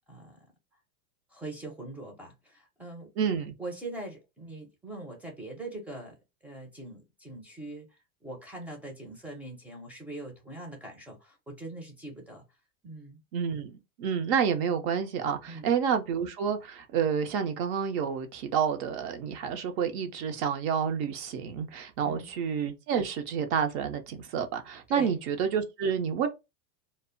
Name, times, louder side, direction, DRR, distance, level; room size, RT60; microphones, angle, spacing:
voice 1, 0.1-0.5 1.3-3.1 3.6-6.2 6.4-12.4 12.8-13.2 15.5-15.7 22.0-22.3 24.9-25.1, right 2 dB, 5° right, 0.5 m, -42 dB
voice 2, 3.2-3.5 13.3-26.3, right 7 dB, 45° right, 0.6 m, -29 dB
2.1 x 2.0 x 3.6 m
supercardioid pair, 135°, 41 cm